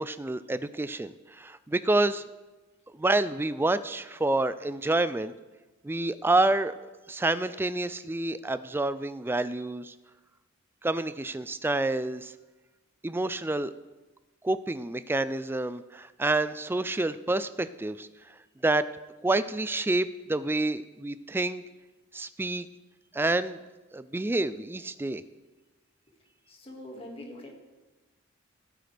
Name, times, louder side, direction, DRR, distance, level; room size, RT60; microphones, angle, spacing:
voice 1, 0.0-2.2 3.0-5.3 5.8-6.7 7.1-9.9 10.8-12.3 13.0-13.7 14.4-18.1 18.6-18.9 19.2-21.6 22.1-22.7 23.1-23.6 23.9-25.2, right 2 dB, 10° right, 14 dB, 0.3 m, -28 dB
voice 2, 26.5-27.5, left 1 dB, 30° left, 0 dB, 1.9 m, -43 dB
15.5 x 9.4 x 3.4 m, 1.1 s
head